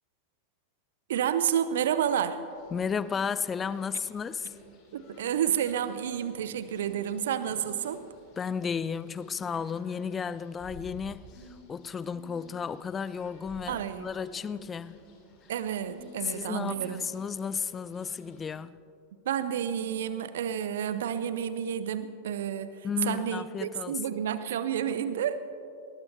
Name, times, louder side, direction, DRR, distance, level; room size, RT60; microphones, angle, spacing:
voice 1, 1.1-2.4 4.9-8.0 13.7-14.1 15.5-17.0 19.2-25.4, right 9 dB, 60° right, 0.9 m, -30 dB
sound 1, 2.1-18.6, left 2 dB, 40° left, 3.3 m, -53 dB
voice 2, 2.7-4.5 8.4-11.3 11.7-15.0 16.2-18.8 22.8-24.0, left 6 dB, 20° left, 0.4 m, -33 dB
21.0 x 19.5 x 3.4 m
figure-of-eight pair, 90°, 0 cm